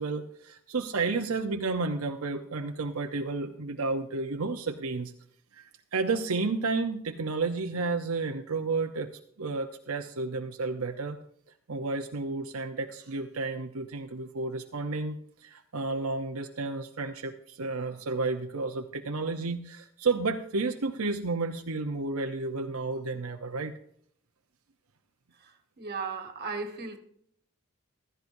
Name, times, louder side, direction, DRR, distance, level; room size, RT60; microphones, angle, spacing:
voice 1, 0.0-5.1 5.6-9.1 9.4-11.2 11.7-23.7, right 3 dB, 80° right, 0.8 m, -31 dB
voice 2, 25.4-27.0, right 4 dB, 45° right, 1.8 m, -36 dB
15.5 x 13.5 x 2.7 m
head